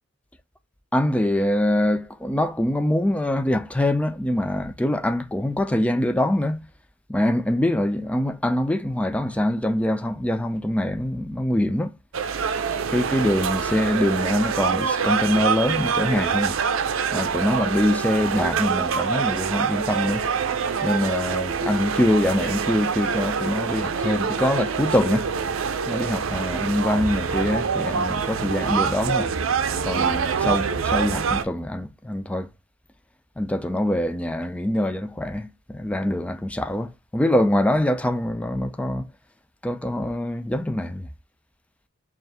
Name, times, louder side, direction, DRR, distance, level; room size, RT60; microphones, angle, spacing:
voice 1, 0.9-6.7 7.1-11.9 12.9-16.6 17.1-20.3 20.8-25.3 25.9-29.3 29.8-32.5 33.4-39.1 39.6-41.1, left 1 dB, 5° left, 0.4 m, -24 dB
sound 1, 12.1-31.4, right 6 dB, 85° right, 0.5 m, -25 dB
4.4 x 2.5 x 3.2 m
head